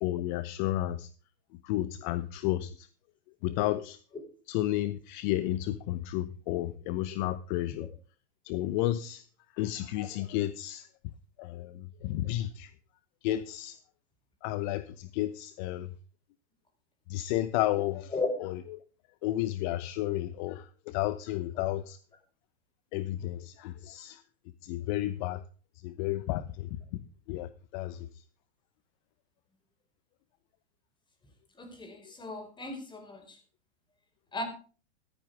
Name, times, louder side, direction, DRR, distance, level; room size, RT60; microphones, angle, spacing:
voice 1, 0.0-1.1 1.6-2.9 3.4-4.0 4.5-7.9 8.4-9.2 9.6-10.9 11.4-12.7 13.2-13.8 14.4-15.9 17.1-18.1 18.4-18.8 19.2-22.0 22.9-24.2 24.6-25.4 25.8-26.8 27.3-28.1, left 14 dB, 45° left, 0.9 m, -32 dB
voice 2, 31.6-33.4 34.3-34.4, left 3 dB, 15° left, 5.1 m, -35 dB
15.5 x 13.0 x 3.5 m
hypercardioid pair, 120°, 32 cm